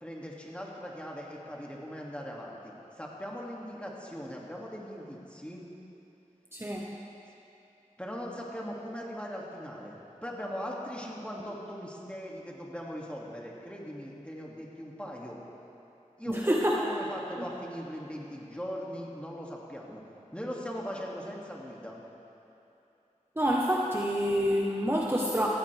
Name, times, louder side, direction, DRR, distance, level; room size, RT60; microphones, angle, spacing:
voice 1, 0.0-5.6 8.0-15.4 16.2-20.0 20.3-22.0, equal, 10° left, -3 dB, 2.5 m, -40 dB
voice 2, 6.5-6.9 16.3-16.7 23.4-25.5, equal, 20° right, -3 dB, 1.2 m, -27 dB
17.5 x 14.5 x 3.5 m, 2.8 s
wide cardioid pair, 40°, 13 cm